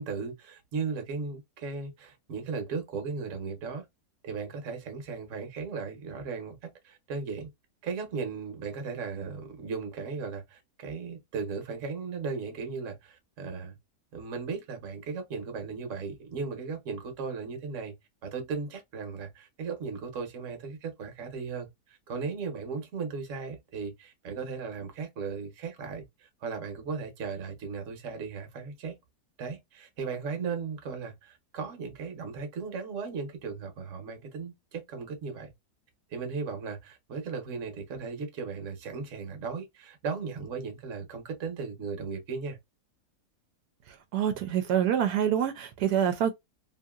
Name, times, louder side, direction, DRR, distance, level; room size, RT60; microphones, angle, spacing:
voice 1, 0.0-3.9 4.2-6.6 6.8-7.5 7.8-13.8 14.1-17.9 18.2-28.9 29.4-35.5 36.1-42.6, right 5 dB, 55° right, 1.2 m, -36 dB
voice 2, 44.1-46.3, right 9 dB, 85° right, 1.1 m, -26 dB
2.9 x 2.7 x 2.3 m
omnidirectional pair, 1.7 m